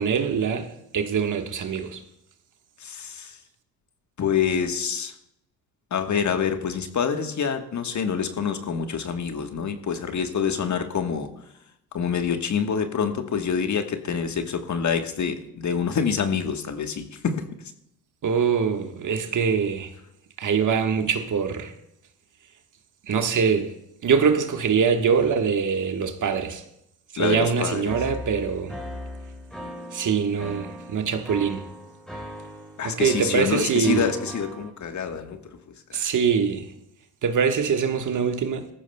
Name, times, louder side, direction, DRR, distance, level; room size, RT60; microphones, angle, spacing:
voice 1, 0.0-2.0 18.2-19.9 20.4-21.7 23.1-23.7 24.0-26.6 27.1-28.8 29.9-31.7 32.8-34.1 35.9-36.7 37.2-38.7, right 6 dB, 45° right, 1.5 m, -23 dB
voice 2, 2.8-3.4 4.2-5.1 5.9-11.3 11.9-17.4 27.2-27.9 32.8-35.4 35.9-36.1, left 6 dB, 40° left, 1.4 m, -26 dB
sound 1, 27.9-34.7, equal, ahead, 3.8 m, -38 dB
18.0 x 14.5 x 2.3 m
hypercardioid pair, 55°, 44 cm